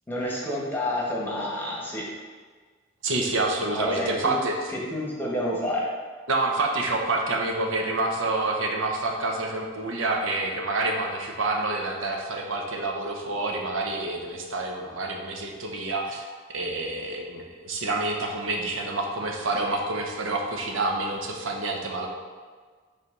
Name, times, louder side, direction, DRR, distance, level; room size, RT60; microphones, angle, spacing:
voice 1, 0.1-2.0 3.6-4.3 4.7-5.9, left 1 dB, 10° left, -5 dB, 1.2 m, -29 dB
voice 2, 3.0-4.7 6.3-22.1, right 2 dB, 75° right, 1 dB, 0.8 m, -28 dB
5.5 x 3.3 x 5.3 m, 1.5 s
head